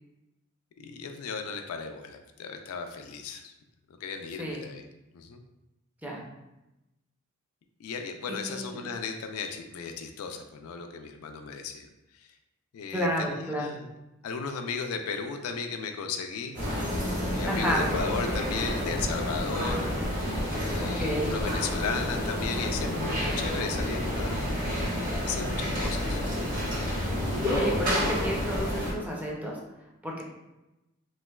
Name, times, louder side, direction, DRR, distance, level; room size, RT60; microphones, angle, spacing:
voice 1, 0.8-3.5 4.0-4.8 5.1-5.4 7.8-11.9 12.7-13.9 14.2-16.6 17.3-19.9 20.7-24.4 25.2-26.2, left 5 dB, 80° left, 5 dB, 0.3 m, -35 dB
voice 2, 8.3-8.7 12.9-13.8 17.4-17.9 20.8-21.3 27.5-29.6 30.0-30.2, equal, 5° right, -3 dB, 0.5 m, -31 dB
sound 1, 16.5-28.9, equal, 45° right, 1.1 m, -29 dB
3.2 x 2.8 x 2.2 m, 0.96 s
head